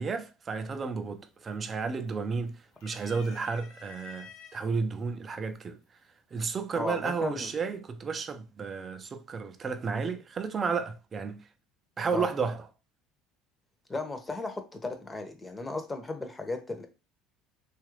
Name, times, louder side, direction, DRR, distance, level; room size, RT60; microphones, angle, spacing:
voice 1, 0.0-5.8 6.3-11.4 12.0-12.6, right 5 dB, 30° right, 0.5 m, -32 dB
sound 1, 0.9-1.3 1.6-2.3 2.7-4.7 5.5-5.6 6.9-7.3, left 7 dB, 80° left, 0.6 m, -50 dB
voice 2, 6.7-7.5 12.1-12.3 13.9-16.9, left 3 dB, 15° left, 0.7 m, -35 dB
2.9 x 2.4 x 3.1 m
supercardioid pair, 105°, 0 cm